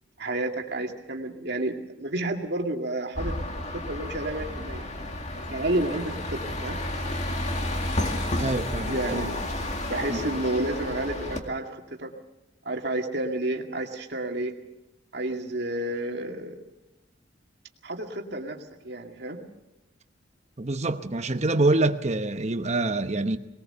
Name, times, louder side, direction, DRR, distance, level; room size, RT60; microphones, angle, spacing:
voice 1, 0.2-4.8 5.5-6.8 8.9-9.4 9.8-12.1 12.6-14.5 15.1-16.6 17.8-18.6 18.8-19.4, right 1 dB, 60° right, 2.3 m, -30 dB
sound 1, 3.2-11.4, left 1 dB, 40° left, 2.1 m, -31 dB
voice 2, 8.4-9.3 10.1-10.2 20.6-23.4, right 2 dB, 35° right, 1.0 m, -26 dB
20.5 x 19.5 x 6.9 m
head